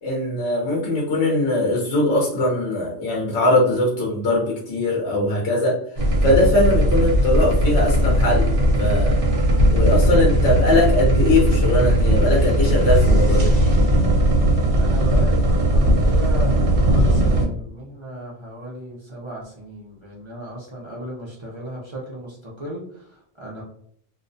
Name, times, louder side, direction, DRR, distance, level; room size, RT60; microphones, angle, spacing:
voice 1, 0.0-5.8 6.2-8.5 8.8-9.1 9.7-13.5, left 1 dB, 65° left, -3 dB, 0.9 m, -21 dB
sound 1, 6.0-17.4, right 1 dB, 55° right, 0.8 m, -18 dB
voice 2, 14.8-23.6, right 1 dB, 40° right, -5 dB, 0.4 m, -35 dB
2.4 x 2.1 x 2.5 m, 0.66 s
omnidirectional pair, 1.2 m